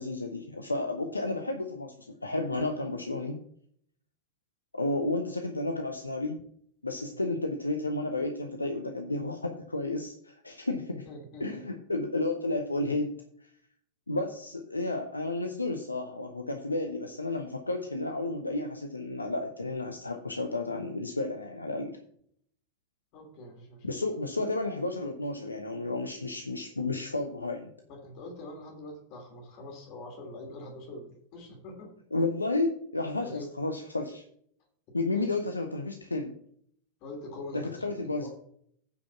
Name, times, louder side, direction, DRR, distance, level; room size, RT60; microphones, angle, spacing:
voice 1, 0.0-1.9 2.2-3.4 4.7-6.4 6.8-11.1 11.4-13.2 14.1-22.0 23.8-27.7 32.1-34.2 34.9-36.3 37.5-38.3, left 2 dB, 80° left, 5 dB, 0.8 m, -32 dB
voice 2, 11.0-11.6 23.1-23.9 27.9-31.9 33.2-33.5 35.1-35.4 37.0-38.3, left 2 dB, 45° left, 1 dB, 3.1 m, -44 dB
9.3 x 5.2 x 5.8 m, 0.65 s
figure-of-eight pair, 90°, 0 cm